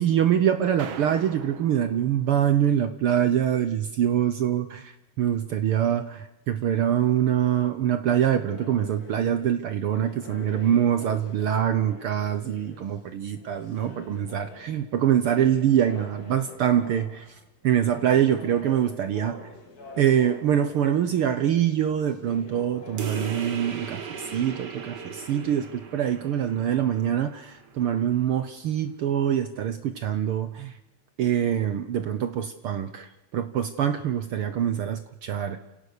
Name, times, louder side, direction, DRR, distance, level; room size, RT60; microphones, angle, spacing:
voice 1, 0.0-17.3 17.6-19.4 20.0-24.0 24.3-30.7 31.2-35.7, right 10 dB, 75° right, 10 dB, 1.2 m, -24 dB
sound 1, 0.8-2.8, right 7 dB, 55° right, 1.5 m, -41 dB
sound 2, 8.5-23.6, left 3 dB, 30° left, 2.8 m, -46 dB
sound 3, 23.0-28.0, right 5 dB, 40° right, 1.8 m, -38 dB
29.5 x 17.0 x 6.6 m, 0.96 s
omnidirectional pair, 3.7 m